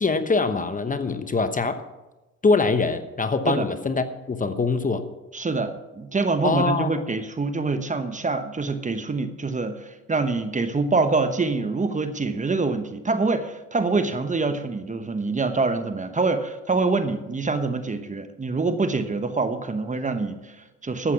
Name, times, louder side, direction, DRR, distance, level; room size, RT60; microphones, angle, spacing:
voice 1, 0.0-1.8 2.4-5.1 6.4-7.0, left 4 dB, 25° left, 10 dB, 1.0 m, -23 dB
voice 2, 5.3-21.1, right 3 dB, 25° right, 10 dB, 1.0 m, -25 dB
13.0 x 8.1 x 5.9 m, 1.1 s
supercardioid pair, 75°, 32 cm